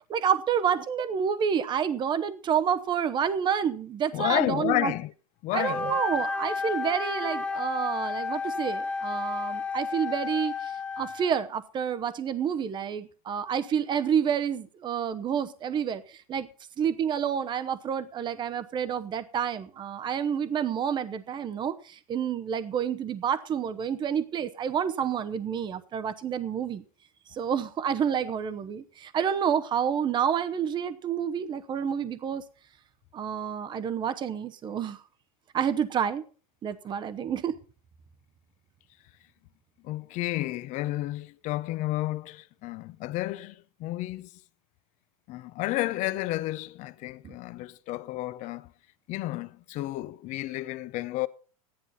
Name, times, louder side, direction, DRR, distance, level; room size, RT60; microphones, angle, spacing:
voice 1, 0.1-4.9 5.5-16.0 16.3-16.5 16.8-26.8 27.3-32.4 33.1-35.0 35.5-36.2 36.6-37.5 47.2-47.3, right 8 dB, 25° right, 0.9 m, -29 dB
voice 2, 4.1-5.1 5.4-5.9 39.8-44.3 45.3-48.7 49.1-51.3, left 17 dB, 40° left, 0.7 m, -31 dB
Wind instrument woodwind instrument, 5.6-11.5, left 4 dB, 5° left, 1.2 m, -32 dB
13.5 x 10.5 x 4.2 m
supercardioid pair, 125°, 19 cm